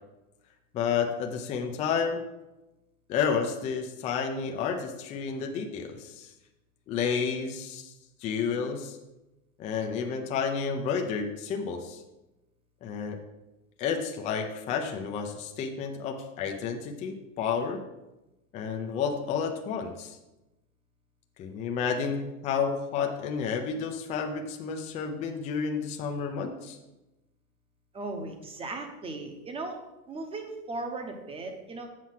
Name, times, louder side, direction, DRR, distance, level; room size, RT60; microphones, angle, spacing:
voice 1, 0.7-2.2 3.1-6.3 6.9-7.9 8.2-9.0 9.6-12.0 12.8-13.2 13.8-17.8 18.5-20.2 21.4-26.8, left 6 dB, 15° left, 3 dB, 0.4 m, -31 dB
voice 2, 27.9-29.8 30.1-31.9, right 2 dB, 15° right, 5 dB, 0.9 m, -37 dB
7.5 x 4.6 x 5.8 m, 0.98 s
supercardioid pair, 145°, 43 cm